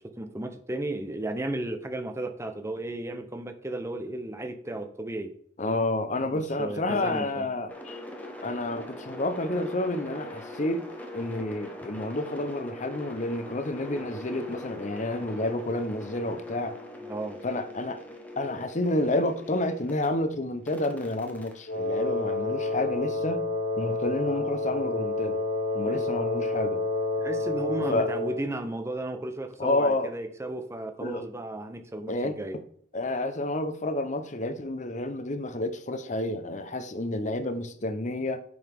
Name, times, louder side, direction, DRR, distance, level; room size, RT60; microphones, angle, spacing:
voice 1, 0.2-5.3 6.2-7.5 17.1-17.4 25.8-26.3 27.2-32.6, right 1 dB, 15° right, 0.8 m, -34 dB
voice 2, 5.6-8.0 8.4-10.8 11.1-16.8 17.4-18.0 18.4-23.4 23.8-25.4 25.7-26.8 27.9-28.1 29.6-30.1 31.0-31.2 32.1-32.4 32.9-38.4, left 2 dB, 40° left, 0.9 m, -29 dB
sound 1, 7.7-20.1 20.7-22.8, left 2 dB, 10° left, 1.2 m, -42 dB
Wind instrument woodwind instrument, 21.7-28.4, left 2 dB, 75° left, 2.3 m, -29 dB
9.6 x 5.3 x 3.6 m
head